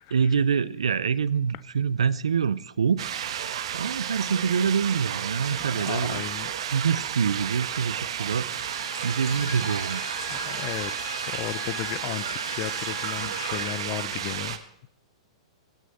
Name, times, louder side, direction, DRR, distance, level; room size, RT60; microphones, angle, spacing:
voice 1, 0.1-3.1 3.7-6.2 6.7-10.0, right 6 dB, 85° right, 19 dB, 0.5 m, -26 dB
sound 1, 3.0-14.6, right 9 dB, 70° right, 1.1 m, -32 dB
voice 2, 5.5-6.5 9.4-9.7 10.3-14.6, left 15 dB, 45° left, 20 dB, 0.5 m, -35 dB
Bowed string instrument, 8.5-13.8, left 4 dB, 65° left, 3.6 m, -39 dB
17.0 x 6.3 x 4.1 m, 0.75 s
hypercardioid pair, 115°, 3 cm